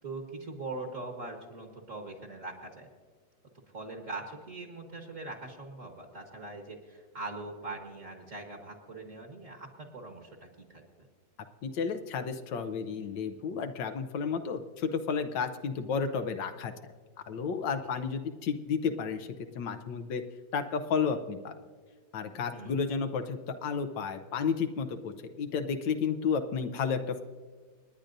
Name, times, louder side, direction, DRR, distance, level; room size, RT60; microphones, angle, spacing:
voice 1, 0.0-2.9 3.7-10.4 10.7-11.1 17.9-18.0 22.5-22.8, right 2 dB, 45° right, 2 dB, 1.7 m, -42 dB
voice 2, 11.6-16.7 17.3-20.2 20.5-21.5 22.1-27.2, left 6 dB, 80° left, 6 dB, 1.4 m, -32 dB
29.0 x 10.0 x 2.6 m, 1.5 s
omnidirectional pair, 2.0 m